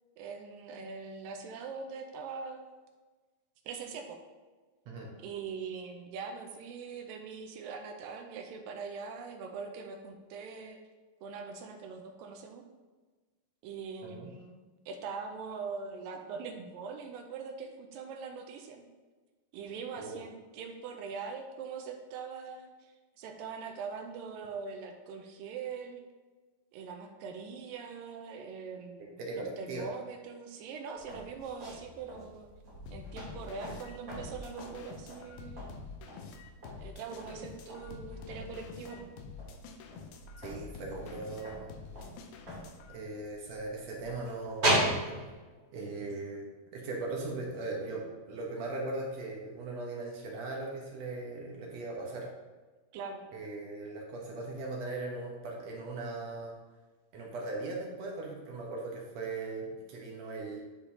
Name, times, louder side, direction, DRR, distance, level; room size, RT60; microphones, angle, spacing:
voice 1, 0.2-2.7 3.7-4.2 5.2-10.8 11.2-12.6 13.6-18.8 19.5-26.0 26.7-32.5 32.9-35.6 36.8-39.0 52.9-53.3, right 5 dB, 80° right, 4 dB, 2.2 m, -42 dB
voice 2, 29.0-29.9 40.4-41.7 42.9-45.0 45.7-52.3 53.3-56.6 57.1-60.6, right 2 dB, 65° right, -2 dB, 1.7 m, -39 dB
sound 1, 30.9-45.3, right 1 dB, 35° right, 1.7 m, -38 dB
sound 2, 32.9-43.0, left 5 dB, 90° left, 2.5 m, -48 dB
10.5 x 4.9 x 2.8 m, 1.3 s
omnidirectional pair, 4.3 m